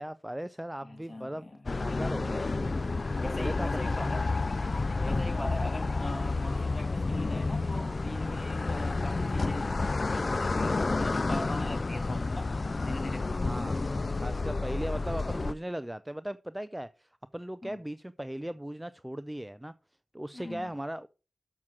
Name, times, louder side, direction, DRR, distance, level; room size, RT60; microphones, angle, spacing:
voice 1, 0.0-2.9 3.4-4.0 5.3-5.5 13.4-13.8 14.2-19.7 20.1-21.1, right 1 dB, 10° right, 0.5 m, -38 dB
voice 2, 0.8-1.6 3.1-4.3 5.0-9.7 10.1-12.6 12.8-13.3 17.6-17.8 20.3-20.7, left 1 dB, 30° left, 2.5 m, -41 dB
sound 1, 1.7-15.5, left 3 dB, 55° left, 0.3 m, -30 dB
7.4 x 6.1 x 6.2 m
cardioid pair, 45°, 0 cm